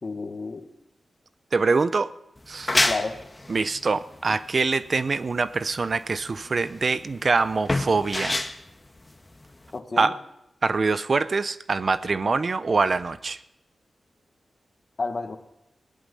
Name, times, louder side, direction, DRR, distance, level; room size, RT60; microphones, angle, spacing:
voice 1, 0.0-0.7 2.7-3.2 9.7-10.1 15.0-15.4, left 3 dB, 50° left, 5 dB, 1.7 m, -31 dB
voice 2, 1.5-2.1 2.5-2.8 3.5-8.4 10.0-10.2 10.6-13.4, right 4 dB, 55° right, 15 dB, 0.7 m, -24 dB
sound 1, 2.4-9.8, left 2 dB, 25° left, 1.5 m, -29 dB
17.0 x 11.0 x 5.5 m, 0.86 s
cardioid pair, 45°, 0 cm